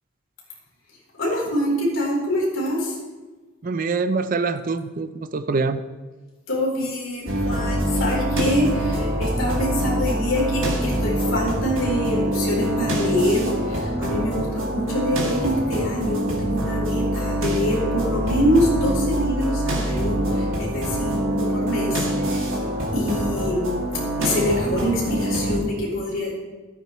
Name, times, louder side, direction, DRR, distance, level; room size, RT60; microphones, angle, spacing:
voice 1, 1.2-2.9 6.5-20.2 20.6-22.0 22.3-22.5 22.9-23.8 24.2-26.3, left 1 dB, 70° left, -3 dB, 3.7 m, -25 dB
voice 2, 3.6-5.8, right 4 dB, 40° right, 11 dB, 0.4 m, -24 dB
sound 1, 7.3-25.6, right 1 dB, 75° right, 2.4 m, -25 dB
14.0 x 9.0 x 3.1 m, 1.3 s
head